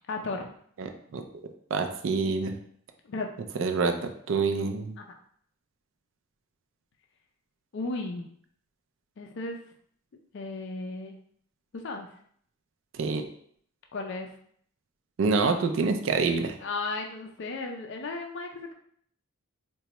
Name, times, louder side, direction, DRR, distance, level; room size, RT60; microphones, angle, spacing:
voice 1, 0.1-0.5 3.0-3.3 3.6-3.7 7.7-8.3 9.2-9.6 10.3-11.2 11.7-12.1 13.9-14.3 16.6-18.7, left 3 dB, 55° left, 3 dB, 0.4 m, -34 dB
voice 2, 0.8-1.2 1.7-2.6 3.6-5.0 12.9-13.2 15.2-16.6, right 4 dB, 60° right, 6 dB, 0.4 m, -27 dB
4.0 x 2.2 x 2.9 m, 0.62 s
head